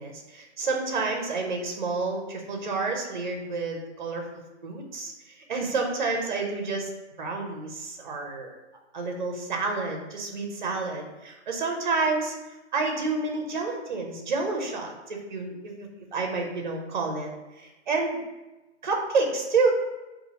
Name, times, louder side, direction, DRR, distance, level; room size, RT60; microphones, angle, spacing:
voice 1, 0.0-6.9 7.2-8.5 8.9-17.3 17.6-18.2 18.8-19.7, right 3 dB, 40° right, 2 dB, 0.6 m, -29 dB
4.1 x 2.4 x 2.8 m, 1.1 s
hypercardioid pair, 170°, 35 cm